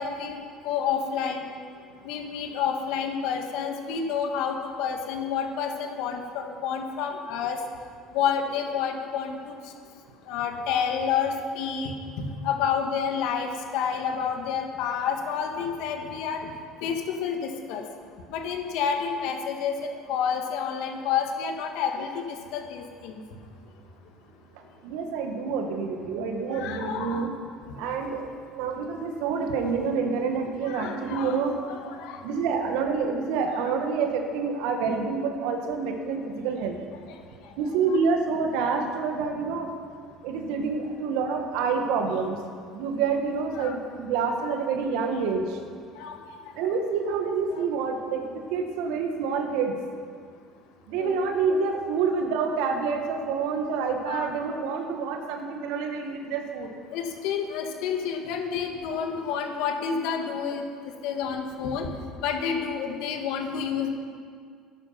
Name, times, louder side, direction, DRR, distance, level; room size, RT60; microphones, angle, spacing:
voice 1, 0.0-1.5 2.0-7.6 8.1-9.5 10.3-16.5 16.8-17.8 18.3-23.2 26.5-27.3 30.6-32.2 37.9-38.0 43.5-43.8 46.0-46.2 47.5-47.6 51.0-51.2 54.1-54.3 56.9-60.6 61.0-61.9 62.2-63.9, left 7 dB, 75° left, 4 dB, 1.9 m, -29 dB
voice 2, 24.8-27.3 27.8-31.6 32.2-36.7 37.6-39.7 40.2-42.4 42.7-45.6 46.6-49.8 50.9-56.7, right 5 dB, 75° right, 4 dB, 1.8 m, -27 dB
14.0 x 11.0 x 5.9 m, 2.1 s
supercardioid pair, 85°, 0 cm